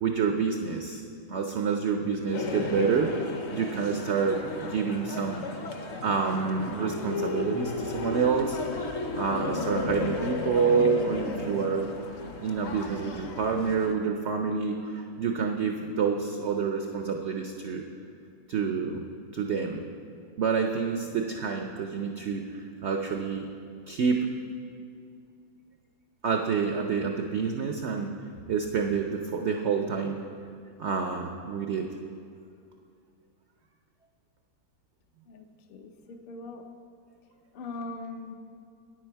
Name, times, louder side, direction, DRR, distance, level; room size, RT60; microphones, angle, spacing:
voice 1, 0.0-1.0 1.3-3.1 3.5-4.4 4.7-5.5 6.0-11.9 12.4-17.8 18.5-19.0 19.3-19.8 20.4-23.5 23.9-24.3 26.2-28.1 28.5-30.2 30.8-31.9, right 5 dB, 85° right, 3 dB, 0.6 m, -28 dB
sound 1, 2.3-13.9, left 3 dB, 55° left, 0.8 m, -34 dB
voice 2, 35.3-36.7 37.5-38.3, left 3 dB, 80° left, 5 dB, 0.5 m, -41 dB
9.6 x 9.0 x 4.6 m, 2.5 s
omnidirectional pair, 1.9 m